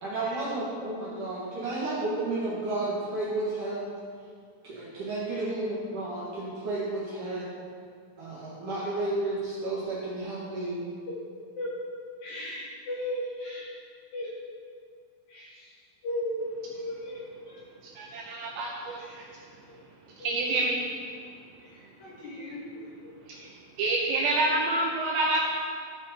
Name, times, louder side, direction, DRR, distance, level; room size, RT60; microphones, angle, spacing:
voice 1, 0.0-3.9 4.6-7.4 8.2-10.9, right 2 dB, 60° right, -8 dB, 2.4 m, -32 dB
voice 2, 12.2-13.7 14.1-14.3 15.3-15.7 16.0-16.4 16.7-17.2 17.5-17.6 19.0-19.3 19.7-19.8 20.2-20.7 21.1-21.2 21.6-23.1, left 1 dB, 60° left, -7 dB, 2.9 m, -37 dB
voice 3, 18.0-19.0 20.2-20.8 23.8-25.5, right 2 dB, 80° right, -2 dB, 2.6 m, -27 dB
12.5 x 6.2 x 4.4 m, 2.1 s
omnidirectional pair, 5.6 m